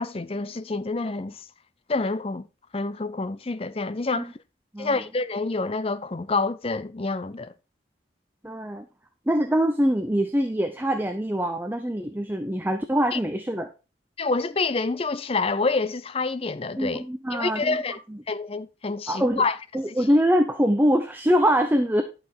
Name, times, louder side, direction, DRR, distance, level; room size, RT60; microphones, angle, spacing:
voice 1, 0.0-1.4 1.9-2.5 2.7-4.3 4.8-7.5 13.1-13.2 14.2-17.0 17.3-18.0 18.3-19.6, left 3 dB, 30° left, 0.5 m, -27 dB
voice 2, 8.4-8.9 9.3-13.7 16.8-17.8 19.1-19.4 19.7-22.0, equal, 10° right, 0.6 m, -23 dB
11.5 x 5.8 x 4.5 m
head